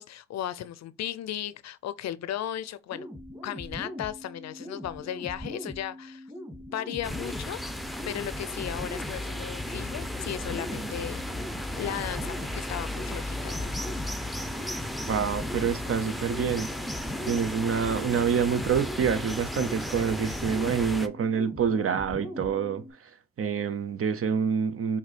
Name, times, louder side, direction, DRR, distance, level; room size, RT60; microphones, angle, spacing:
voice 1, 0.0-3.1 3.4-6.3 6.7-7.6 8.0-11.3 11.8-13.7, left 11 dB, 60° left, 0.5 m, -36 dB
sound 1, 2.9-22.9, left 1 dB, 15° right, 2.2 m, -41 dB
sound 2, 7.0-21.1, left 1 dB, ahead, 0.6 m, -35 dB
voice 2, 15.1-16.9 17.2-23.1 23.4-25.0, right 7 dB, 45° right, 0.7 m, -27 dB
5.7 x 2.7 x 3.3 m
supercardioid pair, 65°, 31 cm